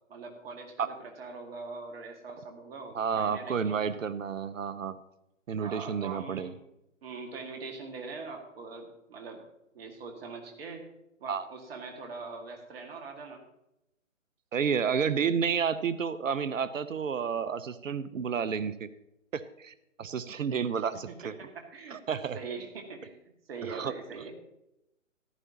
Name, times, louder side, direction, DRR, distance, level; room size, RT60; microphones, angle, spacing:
voice 1, 0.1-3.8 5.6-6.6 7.0-9.4 9.7-10.8 11.2-13.4 21.1-22.0 22.3-23.2 23.5-24.4, right 4 dB, 45° right, 3 dB, 2.0 m, -42 dB
voice 2, 2.9-5.0 5.5-6.5 11.3-11.4 14.5-18.9 19.3-21.3 21.9-22.4 23.7-23.9, right 6 dB, 70° right, 14 dB, 0.8 m, -30 dB
14.0 x 12.5 x 2.9 m, 0.87 s
figure-of-eight pair, 135°, 40 cm